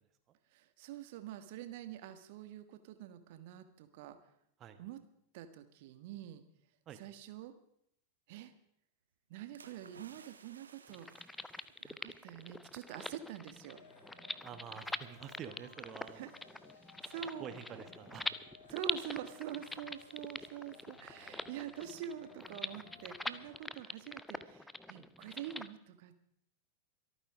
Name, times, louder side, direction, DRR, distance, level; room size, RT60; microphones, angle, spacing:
voice 1, 0.5-4.2 4.8-5.0 5.3-6.4 6.9-7.5 8.3-8.5 9.3-11.1 11.8-13.8 16.1-16.3 17.0-17.5 18.7-26.1, right 9 dB, 50° right, 10 dB, 1.5 m, -46 dB
sound 1, 9.5-12.6 12.9-13.1, right 6 dB, 70° right, 1.2 m, -59 dB
sound 2, 10.9-25.7, left 2 dB, 5° left, 0.7 m, -44 dB
sound 3, 13.7-23.5, left 3 dB, 65° left, 3.8 m, -59 dB
voice 2, 14.4-16.2 17.1-18.3, right 9 dB, 30° right, 10 dB, 1.3 m, -48 dB
24.0 x 9.1 x 4.9 m, 0.74 s
figure-of-eight pair, 90°, 0 cm